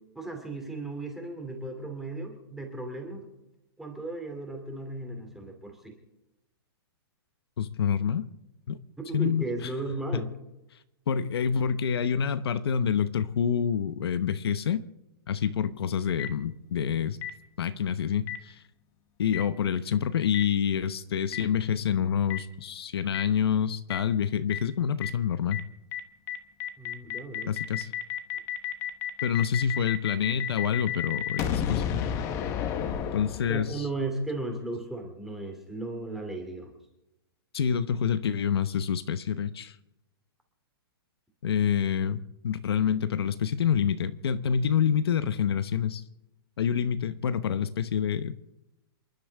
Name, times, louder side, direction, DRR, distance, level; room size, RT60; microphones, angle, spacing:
voice 1, 0.1-3.3 3.8-5.9 9.0-10.3 26.8-27.5 33.5-36.7, right 2 dB, 5° right, 3 dB, 2.7 m, -35 dB
voice 2, 7.6-8.2 8.7-8.8 9.1-9.7 10.1-10.2 11.1-14.8 15.3-17.2 17.6-18.6 19.2-25.6 27.5-27.9 29.2-31.8 33.1-33.9 37.5-39.7 41.4-46.0 46.6-48.3, left 8 dB, 75° left, 12 dB, 1.0 m, -27 dB
Boom, 16.2-16.3 17.2-17.3 18.3-18.4 19.3-19.4 20.3-20.4 21.3-21.4 22.3-22.4 23.1-23.2 23.9-24.0 24.5-24.6 25.0-25.1 25.5-25.6 25.9-26.0 26.3-33.8, left 9 dB, 20° left, 1.1 m, -31 dB
28.5 x 11.5 x 3.5 m, 0.93 s
hypercardioid pair, 165°, 13 cm